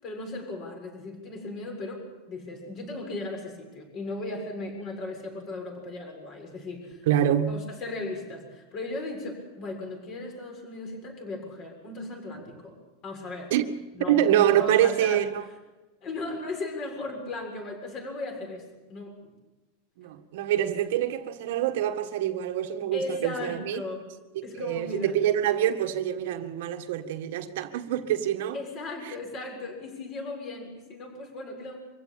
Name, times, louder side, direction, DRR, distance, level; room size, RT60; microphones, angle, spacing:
voice 1, 0.0-7.1 7.5-12.8 13.0-13.5 13.9-14.2 14.5-15.2 16.0-19.3 22.9-24.0 24.4-25.2 28.5-31.8, left 2 dB, 30° left, 7.0 m, -37 dB
voice 2, 7.1-7.6 13.5-13.7 14.1-15.4 20.0-23.8 24.6-28.6 29.1-29.2, right 11 dB, 65° right, 1.8 m, -25 dB
24.5 x 15.5 x 9.0 m
supercardioid pair, 160°, 0 cm